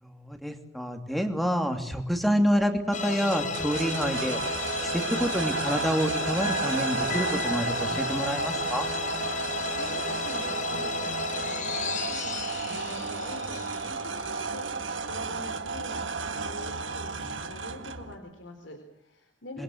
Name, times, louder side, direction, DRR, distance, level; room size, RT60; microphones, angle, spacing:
voice 1, 0.0-4.4 4.8-8.9 19.5-19.6, equal, ahead, 5 dB, 2.8 m, -28 dB
sound 1, 2.9-14.3, left 4 dB, 40° left, 1.7 m, -33 dB
sound 2, 3.3-18.1, right 4 dB, 75° right, 1.8 m, -33 dB
voice 2, 9.3-16.1 16.4-19.6, left 1 dB, 70° left, 5 dB, 3.9 m, -44 dB
27.5 x 22.0 x 8.0 m, 0.81 s
head